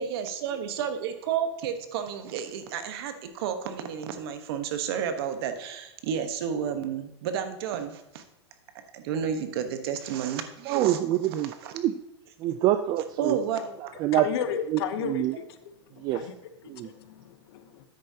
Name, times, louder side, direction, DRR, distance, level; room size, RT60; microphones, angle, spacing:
voice 1, 0.0-8.2 8.9-11.0 11.6-11.7 13.2-14.0, right 8 dB, 55° right, 1.2 m, -31 dB
voice 2, 10.6-12.0 12.4-13.4 13.8-14.3 14.7-15.4 16.0-16.3 16.7-16.9, right 13 dB, 30° right, 0.3 m, -26 dB
voice 3, 14.1-15.4 15.9-16.3 16.6-17.8, left 8 dB, 60° left, 0.9 m, -33 dB
9.7 x 8.5 x 2.8 m
supercardioid pair, 145°, 15 cm